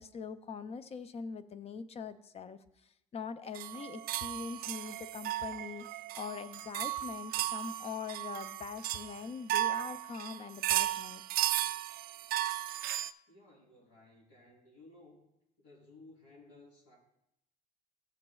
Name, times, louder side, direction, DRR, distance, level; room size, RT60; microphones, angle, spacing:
voice 1, 0.0-11.2, left 5 dB, 35° left, 11 dB, 0.5 m, -43 dB
sound 1, 3.5-13.1, right 14 dB, 65° right, 0.4 m, -35 dB
voice 2, 13.3-15.3 15.6-17.0, left 2 dB, 85° left, -3 dB, 3.6 m, -57 dB
14.5 x 7.4 x 2.3 m, 0.82 s
cardioid pair, 110°, 17 cm